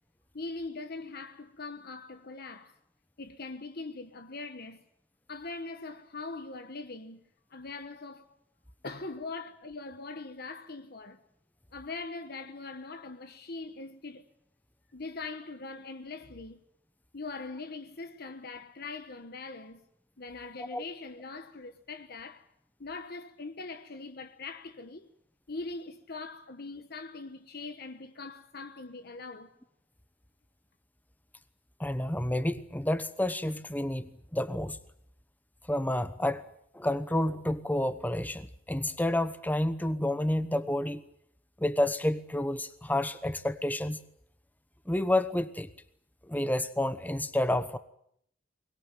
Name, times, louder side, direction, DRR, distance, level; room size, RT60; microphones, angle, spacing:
voice 1, 0.3-2.8 3.2-4.8 5.3-7.2 7.5-8.3 8.8-11.2 11.7-14.3 14.9-16.6 17.1-19.8 20.2-22.5 22.8-25.1 25.5-29.5, left 3 dB, 55° left, 1.2 m, -41 dB
voice 2, 31.8-34.8 35.7-36.4 36.7-41.0 41.6-44.0 44.9-45.7 46.3-47.8, left 1 dB, 10° left, 1.0 m, -29 dB
23.5 x 21.0 x 9.0 m
head